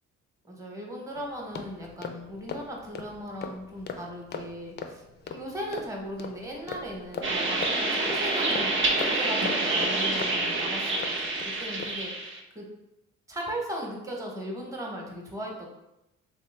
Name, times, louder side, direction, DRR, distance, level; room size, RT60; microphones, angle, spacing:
voice 1, 0.4-11.1 11.4-12.6 13.3-15.7, equal, 10° right, -1 dB, 0.9 m, -38 dB
sound 1, 1.1-11.5 11.8-12.0, left 5 dB, 35° left, 0.4 m, -40 dB
sound 2, 7.2-12.4, right 2 dB, 40° right, 0.7 m, -27 dB
3.2 x 3.0 x 3.2 m, 0.90 s
cardioid pair, 90°, 30 cm